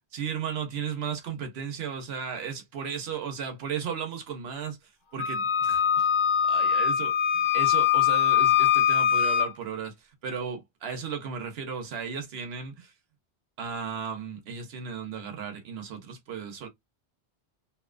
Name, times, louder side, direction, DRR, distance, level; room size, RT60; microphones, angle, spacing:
voice 1, 0.1-6.1 6.4-12.9 13.6-16.7, right 6 dB, 70° right, 1.0 m, -35 dB
Wind instrument woodwind instrument, 5.2-9.5, left 9 dB, 60° left, 0.6 m, -22 dB
2.7 x 2.1 x 2.4 m
omnidirectional pair, 1.1 m